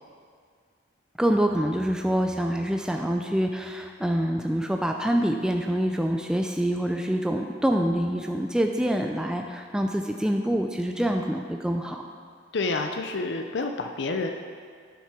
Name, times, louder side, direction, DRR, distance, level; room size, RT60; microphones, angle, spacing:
voice 1, 1.2-12.0, equal, 5° right, 3 dB, 0.4 m, -26 dB
voice 2, 12.5-14.3, left 3 dB, 65° left, 5 dB, 0.6 m, -28 dB
9.1 x 7.3 x 6.1 m, 2.1 s
head